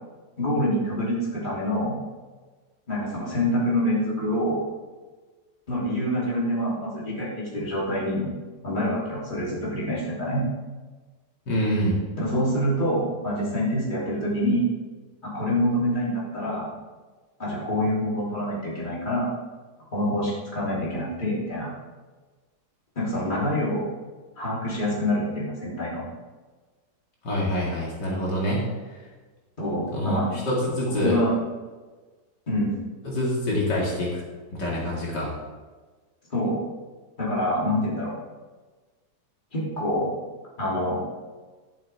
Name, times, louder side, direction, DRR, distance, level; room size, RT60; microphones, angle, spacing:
voice 1, 0.4-2.0 2.9-4.6 5.7-8.3 8.6-10.4 12.2-14.7 15.2-16.7 17.4-19.3 19.9-21.7 23.0-23.9 24.4-26.1 29.6-30.4 31.0-31.3 32.5-32.7 36.3-36.6 37.2-38.1 39.5-40.1 40.6-41.0, equal, 25° left, -7 dB, 3.4 m, -26 dB
voice 2, 11.5-12.0 27.2-28.6 29.9-31.2 33.0-34.2 34.6-35.3, equal, 80° left, -5 dB, 3.0 m, -26 dB
12.0 x 7.6 x 3.5 m, 1.3 s
omnidirectional pair, 1.8 m